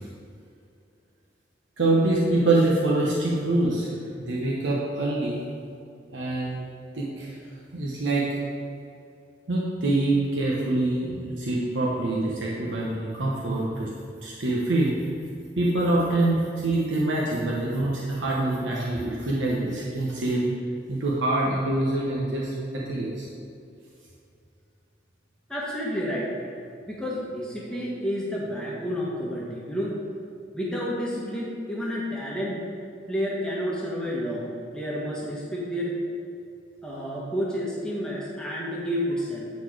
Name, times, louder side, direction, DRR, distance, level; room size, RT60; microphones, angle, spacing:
voice 1, 1.8-3.9 4.2-5.4 6.1-6.6 6.9-7.3 7.7-8.3 9.5-13.9 14.2-14.9 15.5-20.4 20.9-23.2, right 2 dB, 90° right, -4 dB, 1.0 m, -25 dB
voice 2, 25.5-26.3 26.9-30.0 30.5-32.7 33.1-34.4 34.7-36.0 36.8-39.5, equal, 5° left, -5 dB, 1.1 m, -30 dB
8.8 x 4.2 x 4.9 m, 2.5 s
head